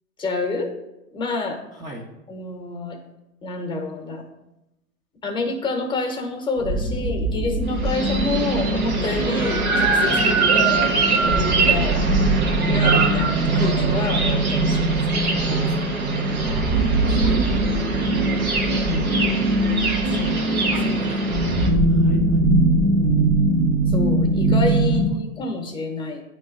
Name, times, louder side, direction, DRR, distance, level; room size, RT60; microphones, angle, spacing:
voice 1, 0.2-0.7 1.1-1.6 2.3-3.0 3.4-4.2 5.2-10.8 11.4-12.0 12.6-15.3 15.6-15.8 18.8-19.2 20.1-20.7 23.9-26.2, left 3 dB, 10° left, 3 dB, 0.9 m, -28 dB
voice 2, 1.8-2.1 10.7-10.9 16.4-18.1 20.7-21.6 21.9-22.5 24.9-25.2, right 1 dB, 10° right, -2 dB, 0.5 m, -38 dB
sound 1, 6.6-25.1, right 2 dB, 65° right, 1.1 m, -21 dB
sound 2, 7.7-21.7, right 3 dB, 80° right, 1.3 m, -24 dB
9.0 x 3.0 x 3.7 m, 0.93 s
hypercardioid pair, 110°, 42 cm